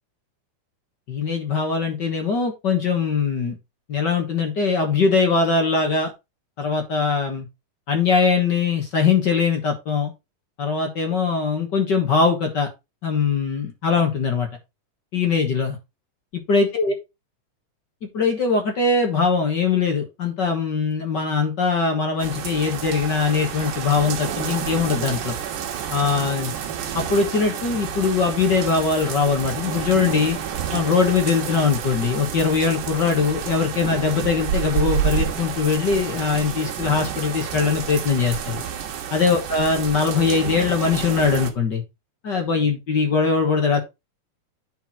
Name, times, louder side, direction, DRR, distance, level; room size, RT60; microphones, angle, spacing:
voice 1, 1.1-3.5 3.9-6.1 6.6-7.4 7.9-10.1 10.6-12.7 13.0-14.5 15.1-15.8 16.5-16.9 18.1-25.4 25.9-26.5 26.9-30.4 30.7-38.6 39.1-41.8 42.2-43.8, left 5 dB, 50° left, 3 dB, 1.4 m, -21 dB
sound 1, 22.2-41.5, right 8 dB, 75° right, 2.9 m, -29 dB
10.5 x 4.6 x 4.2 m, 0.24 s
omnidirectional pair, 3.7 m